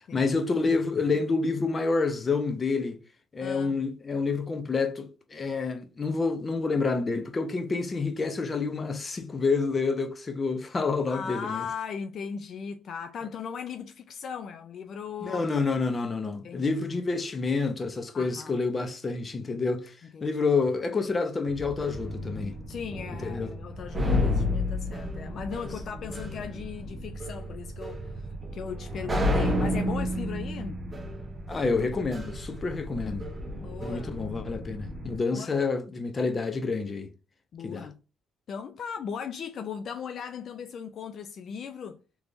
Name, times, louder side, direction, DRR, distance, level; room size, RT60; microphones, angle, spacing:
voice 1, 0.0-3.0 3.3-11.6 15.2-22.5 23.2-23.5 24.0-24.5 31.5-33.3 33.8-37.1 37.6-37.9, left 4 dB, 30° left, 0.7 m, -28 dB
voice 2, 3.4-3.8 11.1-15.5 16.4-16.8 18.1-18.6 20.1-20.4 22.7-30.8 33.0-33.1 33.6-34.2 35.3-35.5 37.5-38.0 38.5-42.0, left 6 dB, 60° left, 0.4 m, -38 dB
sound 1, 21.5-35.2, left 1 dB, 20° right, 0.9 m, -32 dB
3.4 x 3.0 x 2.5 m
cardioid pair, 90°, 0 cm